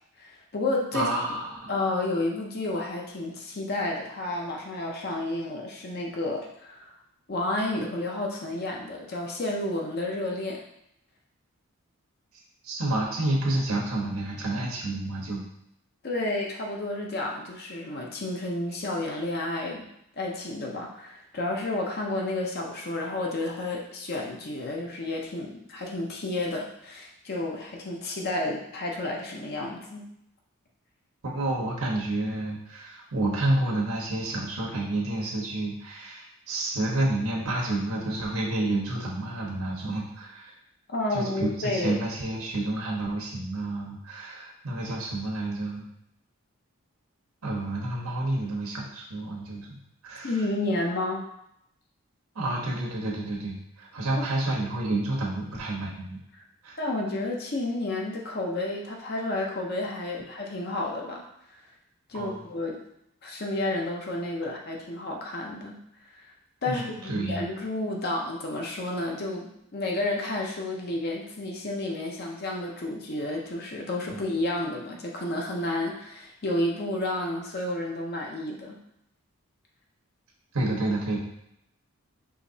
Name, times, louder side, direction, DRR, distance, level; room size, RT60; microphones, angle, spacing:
voice 1, 0.2-1.1 1.7-6.9 7.3-10.6 16.0-19.9 20.2-30.0 40.9-42.0 50.2-51.2 54.2-54.3 56.8-61.3 62.1-62.8 63.2-65.8 66.1-66.3 66.6-78.8, left 2 dB, 45° left, -1 dB, 0.6 m, -31 dB
voice 2, 0.9-1.7 12.6-15.4 31.3-40.5 41.1-45.8 47.4-49.8 50.0-50.4 52.3-56.2 56.6-56.8 62.1-62.5 66.7-67.5 74.1-74.2 80.5-81.2, right 2 dB, 90° right, -2 dB, 1.1 m, -29 dB
4.9 x 2.9 x 2.7 m, 0.77 s
head